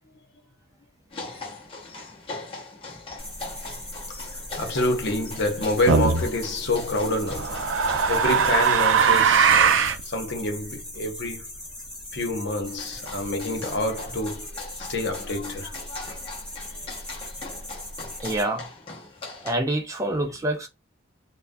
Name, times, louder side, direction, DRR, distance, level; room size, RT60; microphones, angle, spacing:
sound 1, 1.1-9.6 12.7-19.5, left 3 dB, 30° left, 0.7 m, -41 dB
sound 2, 3.2-18.4, left 1 dB, 5° left, 0.9 m, -39 dB
voice 1, 4.1-11.5 12.1-14.5 14.9-15.8 16.6-16.8 20.1-20.2, left 2 dB, 60° left, 0.8 m, -28 dB
sound 3, 5.9-6.2 7.3-10.0, right 6 dB, 80° right, 0.4 m, -20 dB
voice 2, 18.2-18.7 19.4-20.7, right 1 dB, 15° right, 0.4 m, -26 dB
2.3 x 2.1 x 2.5 m
head